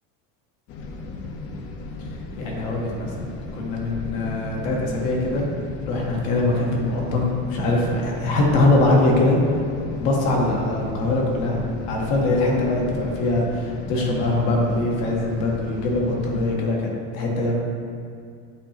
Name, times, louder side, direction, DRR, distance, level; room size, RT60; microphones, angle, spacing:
sound 1, 0.7-16.5, left 2 dB, 40° left, 0.5 m, -36 dB
voice 1, 2.4-5.5 5.8-9.4 9.8-16.9 17.1-17.6, left 2 dB, 70° left, -2 dB, 1.2 m, -22 dB
8.4 x 2.9 x 4.3 m, 2.3 s
cardioid pair, 175°, 37 cm